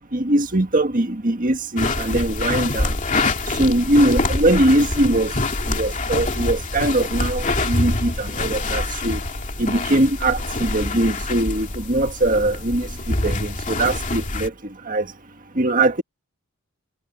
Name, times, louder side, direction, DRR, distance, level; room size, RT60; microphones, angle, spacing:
voice 1, 0.1-2.9 3.6-5.3 5.7-9.2 9.6-12.9 13.2-14.5 14.9-15.1 15.6-16.0, right 1 dB, 35° right, 1.8 m, -21 dB
sound 1, 1.8-14.5, left 2 dB, 35° left, 2.6 m, -25 dB
head